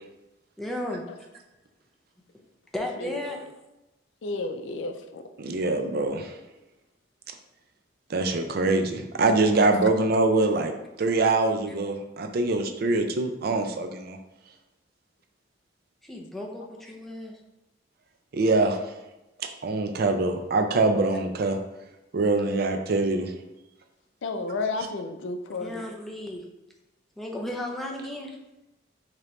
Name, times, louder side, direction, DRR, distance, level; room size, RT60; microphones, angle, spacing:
voice 1, 0.6-1.1 2.7-3.4 16.0-17.4 25.6-26.4 27.2-28.4, left 1 dB, ahead, -1 dB, 0.6 m, -34 dB
voice 2, 3.0-3.4 4.2-5.2 9.8-9.9 16.6-16.7 24.2-25.8, left 3 dB, 90° left, 7 dB, 0.4 m, -32 dB
voice 3, 5.4-6.3 8.1-10.7 11.0-14.2 18.3-18.8 19.6-21.6 22.1-23.3, right 2 dB, 55° right, 6 dB, 0.5 m, -24 dB
4.9 x 2.9 x 3.0 m, 0.98 s
head